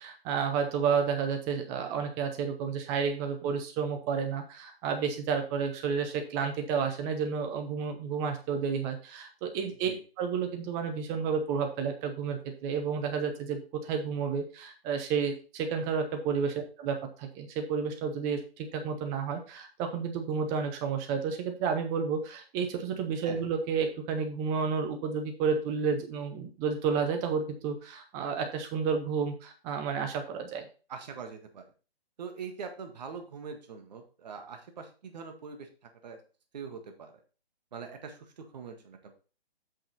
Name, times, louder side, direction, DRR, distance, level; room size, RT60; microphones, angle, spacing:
voice 1, 0.0-9.9 10.2-30.7, right 6 dB, 10° right, 5 dB, 0.7 m, -31 dB
voice 2, 30.9-31.6 32.2-35.7 36.0-36.2 36.5-37.1 37.7-39.1, right 5 dB, 40° right, 5 dB, 1.8 m, -43 dB
8.0 x 6.2 x 4.0 m, 0.35 s
figure-of-eight pair, 145°, 31 cm